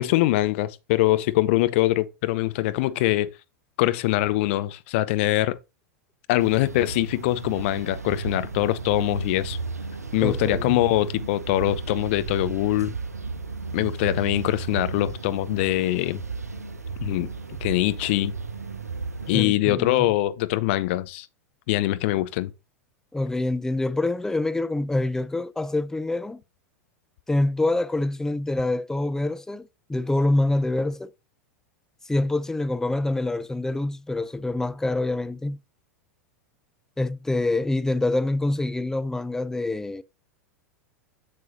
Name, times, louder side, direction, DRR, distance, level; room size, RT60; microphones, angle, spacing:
voice 1, 0.0-3.3 3.8-5.6 6.3-9.6 10.1-12.9 13.7-16.2 17.0-17.3 17.6-18.3 19.3-21.3 21.7-22.5, left 16 dB, 50° left, 0.7 m, -23 dB
sound 1, 6.4-19.4, right 4 dB, 85° right, 0.7 m, -34 dB
voice 2, 10.2-10.8 19.3-20.1 23.1-26.4 27.3-31.1 32.1-35.6 37.0-40.0, left 2 dB, 5° left, 0.5 m, -26 dB
8.0 x 6.7 x 2.6 m
figure-of-eight pair, 90°, 8 cm